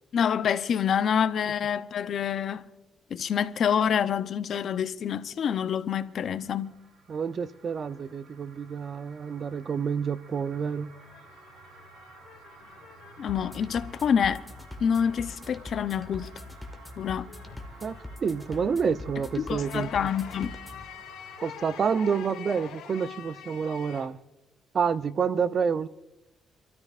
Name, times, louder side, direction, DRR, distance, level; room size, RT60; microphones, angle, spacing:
voice 1, 0.1-2.6 3.1-6.7 13.2-14.4 14.8-16.3 17.0-17.3 19.4-20.5, left 8 dB, 60° left, 0.7 m, -27 dB
sound 1, 6.1-22.0, right 4 dB, 70° right, 4.0 m, -53 dB
voice 2, 7.1-10.9 17.8-19.9 21.4-24.2 24.7-25.9, right 6 dB, 50° right, 0.5 m, -28 dB
sound 2, 10.6-15.2 15.4-24.1, left 8 dB, 90° left, 2.5 m, -47 dB
sound 3, 13.3-20.9, left 1 dB, 5° left, 1.7 m, -43 dB
29.5 x 13.0 x 2.5 m
cardioid pair, 90°, 0 cm